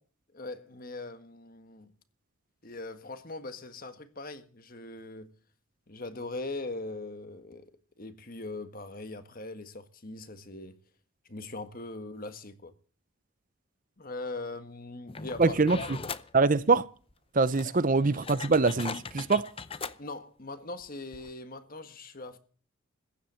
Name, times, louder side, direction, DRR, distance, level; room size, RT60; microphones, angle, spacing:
voice 1, 0.3-1.9 2.6-5.3 5.9-7.7 8.0-10.8 11.3-12.7 14.0-15.9 17.6-17.8 20.0-22.4, left 2 dB, 40° left, 1.6 m, -41 dB
sound 1, 15.1-16.3 17.1-17.2 17.5-20.0 20.8-20.9 21.1-21.3, left 5 dB, 25° left, 0.6 m, -40 dB
voice 2, 15.4-15.8 16.3-16.9 17.3-19.5, right 3 dB, 35° right, 0.6 m, -24 dB
15.5 x 11.0 x 7.0 m
head